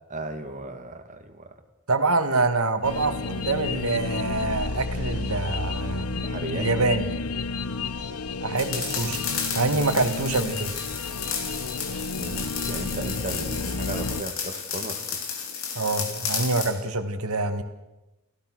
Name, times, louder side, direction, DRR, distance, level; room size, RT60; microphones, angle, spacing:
voice 1, 0.1-1.5 6.1-6.7 8.0-8.2 12.2-15.3, right 1 dB, 35° right, 5 dB, 2.3 m, -36 dB
voice 2, 1.9-6.0 6.5-7.0 8.4-9.2 9.6-10.7 15.8-17.6, right 3 dB, 70° right, 8 dB, 1.9 m, -25 dB
sound 1, 2.8-14.2, left 3 dB, 85° left, 0.9 m, -31 dB
sound 2, 8.6-16.8, left 6 dB, 65° left, 3.6 m, -32 dB
30.0 x 15.5 x 6.4 m, 1.0 s
head